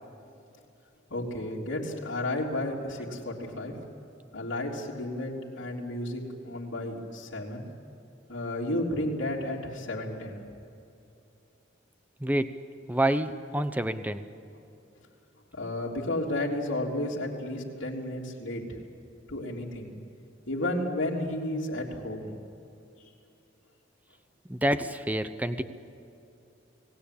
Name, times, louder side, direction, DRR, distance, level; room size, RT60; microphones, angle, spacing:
voice 1, 1.1-3.8 4.3-7.6 8.3-10.4 15.5-18.6 19.3-19.9 20.5-22.3, left 1 dB, 70° left, -4 dB, 3.4 m, -32 dB
voice 2, 12.2-14.2 24.5-25.6, right 1 dB, 10° right, 10 dB, 0.8 m, -28 dB
30.0 x 19.0 x 8.6 m, 2.7 s
head